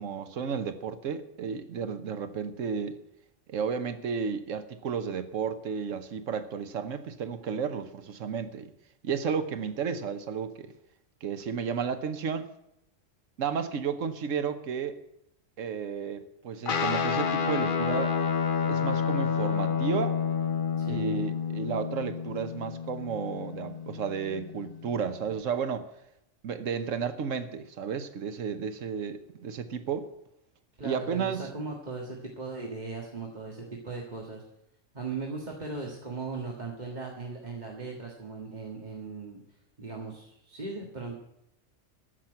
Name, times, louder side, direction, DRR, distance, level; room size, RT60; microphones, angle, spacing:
voice 1, 0.0-3.0 3.5-8.7 9.0-10.7 11.2-12.5 13.4-15.0 15.6-18.2 18.6-20.2 20.9-25.9 26.4-30.1 30.8-31.5, right 6 dB, 85° right, 1.3 m, -32 dB
Guitar, 16.7-25.4, left 6 dB, 50° left, 0.9 m, -30 dB
voice 2, 20.8-21.4 30.8-34.4 34.9-39.4 39.8-41.2, right 3 dB, 35° right, 1.8 m, -38 dB
14.0 x 5.9 x 8.9 m
omnidirectional pair, 1.3 m